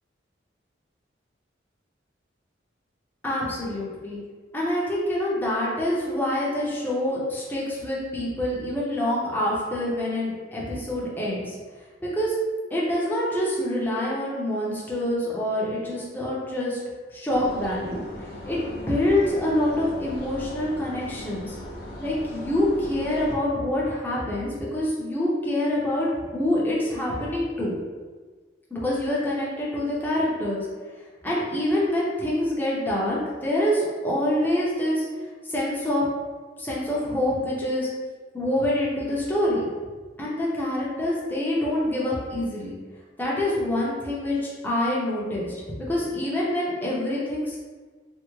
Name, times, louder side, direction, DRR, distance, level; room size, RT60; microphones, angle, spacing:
voice 1, 3.2-4.2 4.5-11.6 12.0-12.4 12.7-16.8 17.1-21.6 22.0-26.1 26.3-27.8 28.7-30.7 31.2-35.1 35.4-36.0 36.6-37.9 38.3-39.7 40.2-42.8 43.2-47.6, left 1 dB, 10° left, -6 dB, 0.6 m, -26 dB
sound 1, 17.3-23.3, left 1 dB, 50° left, 0.6 m, -39 dB
3.4 x 2.1 x 3.0 m, 1.4 s
head